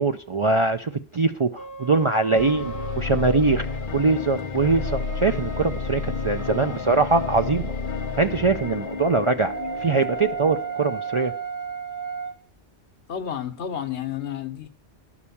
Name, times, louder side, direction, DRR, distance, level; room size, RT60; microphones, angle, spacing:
voice 1, 0.0-3.7 3.9-7.7 8.2-9.5 9.8-11.3, right 3 dB, 50° right, 0.3 m, -22 dB
sound 1, 1.6-3.1 4.6-7.5 9.4-12.4, right 6 dB, 20° right, 0.7 m, -35 dB
sound 2, 2.4-11.4, left 4 dB, 50° left, 0.9 m, -31 dB
voice 2, 6.4-6.8 13.1-14.7, left 9 dB, 90° left, 1.3 m, -31 dB
12.0 x 5.0 x 7.0 m
omnidirectional pair, 1.1 m